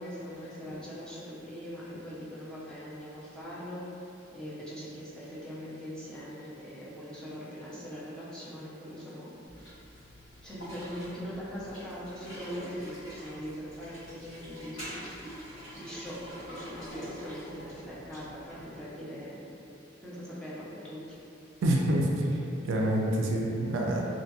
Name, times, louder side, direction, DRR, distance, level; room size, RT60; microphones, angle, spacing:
voice 1, 0.0-3.8 4.3-9.3 10.4-15.1 15.7-19.4 20.0-21.2, equal, 5° left, -9 dB, 0.4 m, -41 dB
sound 1, 9.5-18.7, equal, 75° left, 1.4 m, -45 dB
voice 2, 21.6-22.3 22.6-24.0, right 1 dB, 75° right, -1 dB, 0.3 m, -27 dB
2.6 x 2.6 x 2.3 m, 2.7 s
head